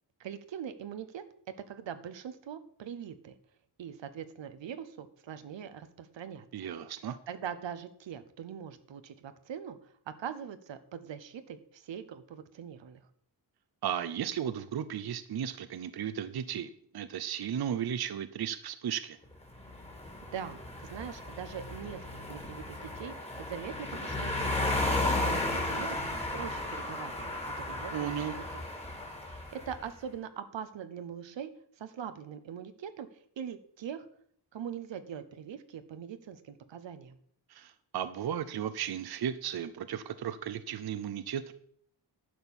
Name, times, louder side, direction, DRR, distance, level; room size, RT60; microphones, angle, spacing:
voice 1, 0.2-1.2 1.7-3.3 3.8-6.7 7.3-13.0 20.3-24.6 25.2-27.3 27.7-28.4 29.2-31.5 31.8-33.1 33.4-34.1 34.5-37.2, right 8 dB, 90° right, 11 dB, 0.9 m, -42 dB
voice 2, 6.5-7.2 13.8-19.2 27.9-28.3 37.5-41.5, right 9 dB, 60° right, 13 dB, 0.7 m, -35 dB
sound 1, 19.5-29.8, left 2 dB, 15° left, 2.1 m, -34 dB
11.0 x 4.4 x 7.1 m, 0.63 s
wide cardioid pair, 95°, 43 cm